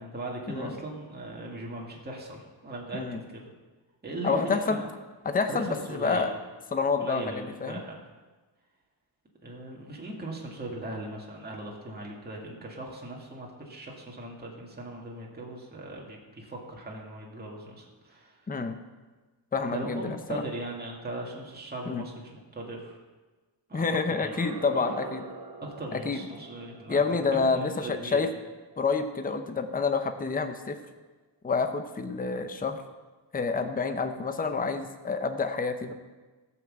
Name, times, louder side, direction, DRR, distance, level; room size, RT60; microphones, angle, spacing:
voice 1, 0.0-3.0 3.3-3.5 4.0-4.9 5.5-6.3 7.0-8.0 9.4-18.4 19.7-23.0 23.7-24.4 25.6-27.0 27.3-28.3, right 2 dB, 20° right, -2 dB, 2.0 m, -39 dB
voice 2, 4.2-4.8 5.2-6.3 6.7-7.8 18.5-18.7 19.5-20.4 21.9-22.0 23.7-25.2 25.9-26.2 26.9-28.3 28.8-30.8 31.4-32.8 33.3-35.9, left 4 dB, 20° left, 7 dB, 0.7 m, -28 dB
sound 1, 24.2-29.1, right 4 dB, 45° right, 1.1 m, -44 dB
14.0 x 6.0 x 7.5 m, 1.3 s
wide cardioid pair, 170°, 45 cm